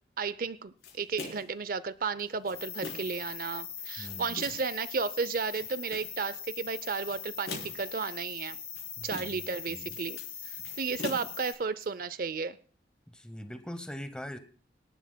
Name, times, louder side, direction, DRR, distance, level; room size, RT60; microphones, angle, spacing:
voice 1, 0.2-8.6 9.0-10.2 10.4-12.6, right 5 dB, 50° right, 17 dB, 0.5 m, -33 dB
sound 1, 0.8-1.6 2.2-3.2 3.8-4.7 5.3-6.2 6.9-7.9 8.5-9.5 9.8-11.8, left 3 dB, 60° left, 3.8 m, -43 dB
sound 2, 2.5-11.5, left 7 dB, 30° left, 4.9 m, -41 dB
voice 2, 4.0-4.4 9.0-9.9 13.1-14.4, equal, 5° left, 9 dB, 0.9 m, -42 dB
24.5 x 11.0 x 2.2 m, 0.42 s
head